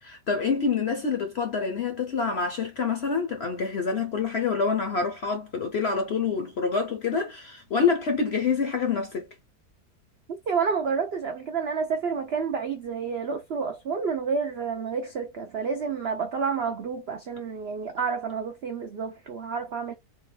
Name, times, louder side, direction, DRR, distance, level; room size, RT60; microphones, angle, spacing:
voice 1, 0.0-9.3, left 5 dB, 55° left, 0.7 m, -27 dB
voice 2, 10.5-19.9, right 5 dB, 75° right, 0.5 m, -29 dB
3.9 x 2.2 x 3.3 m
omnidirectional pair, 1.8 m